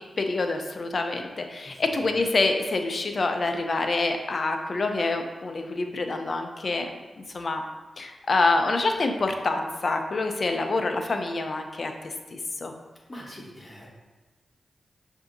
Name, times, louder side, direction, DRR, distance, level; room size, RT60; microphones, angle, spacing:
voice 1, 0.0-6.9 7.3-7.6 8.0-12.7, left 3 dB, 55° left, 5 dB, 0.5 m, -26 dB
voice 2, 1.6-2.2 13.1-13.9, equal, 30° left, -3 dB, 1.2 m, -44 dB
6.7 x 2.7 x 2.6 m, 1.2 s
cardioid pair, 60°, 0 cm